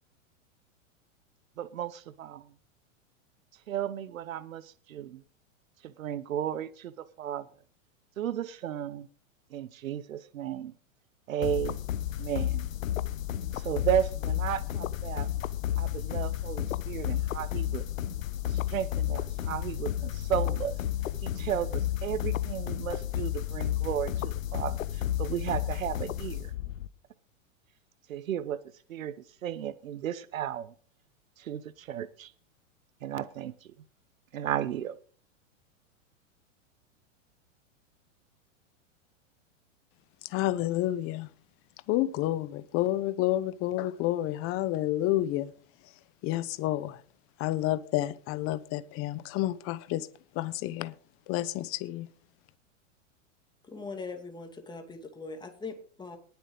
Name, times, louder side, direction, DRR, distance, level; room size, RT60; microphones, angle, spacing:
voice 1, 1.6-2.4 3.7-5.2 5.8-7.5 8.2-9.1 9.5-10.7 11.3-11.8 12.2-12.7 13.5-15.3 15.8-17.9 18.5-20.8 21.2-26.5 28.1-28.6 28.9-29.1 29.4-30.7 31.4-32.3 33.0-33.7 34.3-34.9, right 10 dB, 90° right, 0.8 m, -34 dB
sound 1, 11.4-26.9, left 12 dB, 85° left, 0.9 m, -32 dB
voice 2, 40.3-41.3 41.9-45.5 46.2-47.0 47.4-50.1 50.4-50.9 51.3-52.1, left 15 dB, 35° left, 0.9 m, -29 dB
voice 3, 53.7-56.2, left 4 dB, 10° left, 2.4 m, -41 dB
19.5 x 7.1 x 3.9 m
hypercardioid pair, 125°, 39 cm